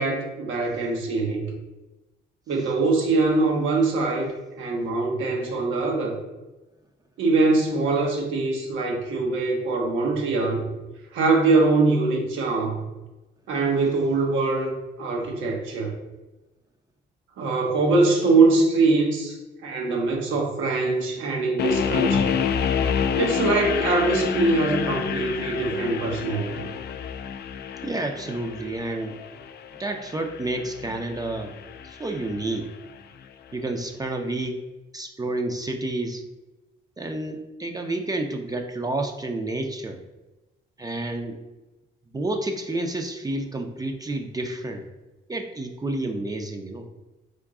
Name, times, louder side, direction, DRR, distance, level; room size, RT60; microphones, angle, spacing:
voice 1, 0.0-1.5 2.5-4.3 4.6-6.1 7.2-10.7 11.1-12.8 13.5-16.0 17.4-19.4 19.6-22.3 23.2-26.7, right 3 dB, 85° right, 0 dB, 1.1 m, -23 dB
sound 1, 21.6-32.6, left 7 dB, 55° left, 0.4 m, -28 dB
voice 2, 27.8-29.2 29.8-31.5 31.8-32.7 33.5-34.6 34.9-36.2 37.0-40.0 40.8-41.4 42.1-44.9 45.3-46.9, right 2 dB, 20° right, 4 dB, 0.5 m, -30 dB
3.8 x 3.6 x 3.6 m, 1.1 s
cardioid pair, 90°, 20 cm